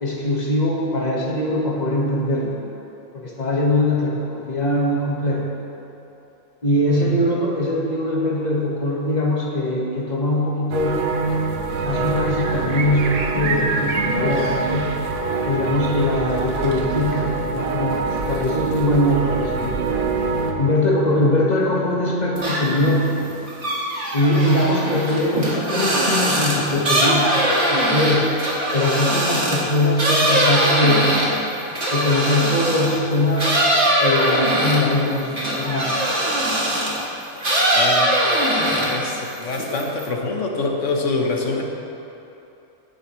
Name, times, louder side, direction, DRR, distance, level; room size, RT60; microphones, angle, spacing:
voice 1, 0.0-2.6 3.1-5.5 6.6-11.0 11.8-14.9 15.5-20.1 20.6-23.3 24.1-28.3 28.7-31.1 31.9-33.6 34.0-36.0, left 1 dB, 30° left, -3 dB, 1.7 m, -21 dB
voice 2, 6.9-7.2 37.7-38.1 38.9-41.6, left 3 dB, 65° left, 1 dB, 1.5 m, -25 dB
Churchbells Blackbird Watering, 10.7-20.5, right 4 dB, 80° right, 1.4 m, -24 dB
sound 1, 22.4-22.9 23.2-33.0 33.4-37.0 37.4-39.1 39.4-40.1, right 1 dB, 55° right, 2.2 m, -21 dB
16.0 x 9.7 x 3.2 m, 3.0 s
omnidirectional pair, 1.4 m